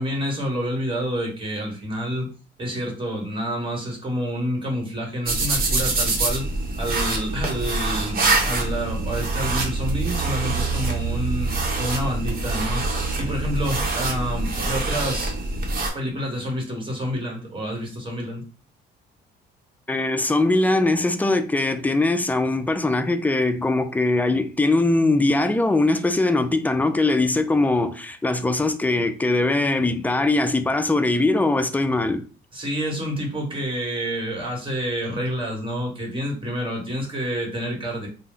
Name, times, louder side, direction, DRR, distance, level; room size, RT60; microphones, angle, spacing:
voice 1, 0.0-2.3 2.6-6.5 6.8-15.3 15.9-18.4 32.5-38.1, equal, 25° right, 1.3 m, -28 dB
sound 1, 5.2-15.9, right 2 dB, 50° right, 0.9 m, -25 dB
sound 2, 8.8-15.5, right 11 dB, 90° right, 0.9 m, -33 dB
voice 2, 19.9-32.3, left 2 dB, 10° left, 0.3 m, -21 dB
2.2 x 2.0 x 3.7 m
cardioid pair, 90°, 20 cm